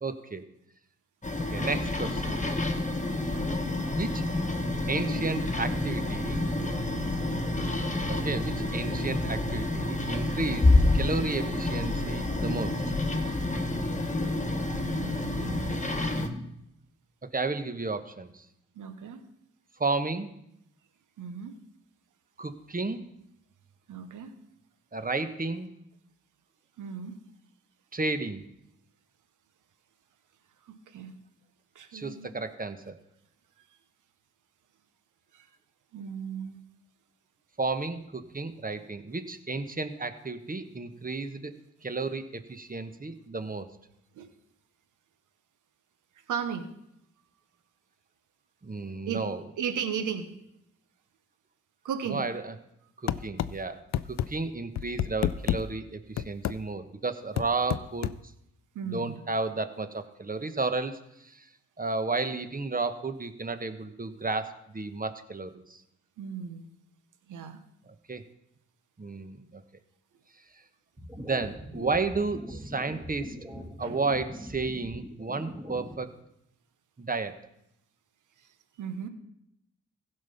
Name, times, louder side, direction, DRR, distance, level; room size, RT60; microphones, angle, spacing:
voice 1, 0.0-0.4 1.5-2.4 3.9-4.2 4.9-6.4 8.1-12.8 17.3-18.5 19.8-20.3 22.4-23.0 24.9-25.7 27.9-28.5 31.9-33.0 37.6-41.5 41.8-43.7 48.6-49.4 52.1-52.5 53.0-53.8 54.1-58.1 58.8-61.5 61.8-65.8 67.9-68.2 69.0-69.6 71.2-73.4 73.8-76.1 77.0-77.4, right 3 dB, 30° right, 9 dB, 1.2 m, -32 dB
sound 1, 1.2-16.3, left 2 dB, 25° left, 1.7 m, -28 dB
voice 2, 3.2-3.5 6.9-7.2 14.7-15.8 18.7-19.2 21.2-21.5 23.9-24.3 26.8-27.2 30.7-31.1 31.7-32.3 35.3-35.4 35.9-36.6 44.1-44.3 46.3-46.7 49.1-49.3 49.6-50.3 51.8-52.2 58.7-59.2 66.2-66.7 67.3-67.6 73.5-73.9 78.8-79.1, right 7 dB, 80° right, 9 dB, 1.2 m, -36 dB
sound 2, 53.1-53.5 53.9-54.3 54.8-55.6 56.2-56.6 57.4-58.2, left 10 dB, 60° left, 0.5 m, -28 dB
sound 3, 71.0-76.0, equal, 10° right, 2.1 m, -42 dB
15.5 x 5.5 x 5.8 m, 0.80 s
supercardioid pair, 45°, 31 cm